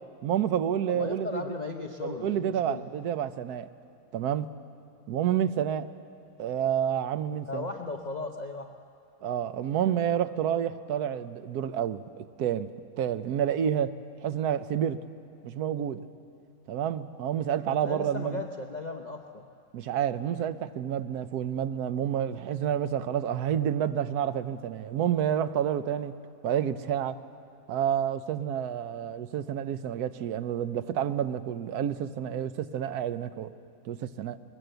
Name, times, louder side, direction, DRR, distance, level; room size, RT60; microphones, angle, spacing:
voice 1, 0.2-1.4 2.0-3.7 4.1-4.5 5.1-5.9 6.4-7.7 9.2-12.7 13.0-14.0 14.2-15.0 15.4-16.0 16.7-18.4 19.7-26.1 26.4-27.2 27.7-33.5 33.9-34.4, right 9 dB, 85° right, 11 dB, 1.2 m, -29 dB
voice 2, 0.9-2.8 7.5-8.7 17.7-19.5, left 3 dB, 35° left, 2 dB, 0.8 m, -36 dB
21.0 x 20.5 x 7.9 m, 2.5 s
omnidirectional pair, 1.6 m